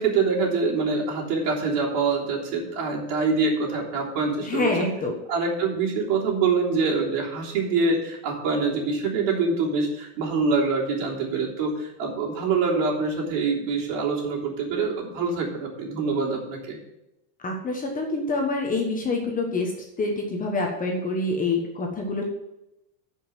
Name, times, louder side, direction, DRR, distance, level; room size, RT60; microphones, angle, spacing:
voice 1, 0.0-4.7 5.3-16.8, right 4 dB, 55° right, -2 dB, 3.4 m, -25 dB
voice 2, 4.4-5.1 17.4-19.7 20.0-22.2, left 3 dB, 15° left, 1 dB, 1.2 m, -26 dB
10.0 x 5.5 x 7.3 m, 0.89 s
supercardioid pair, 155°, 47 cm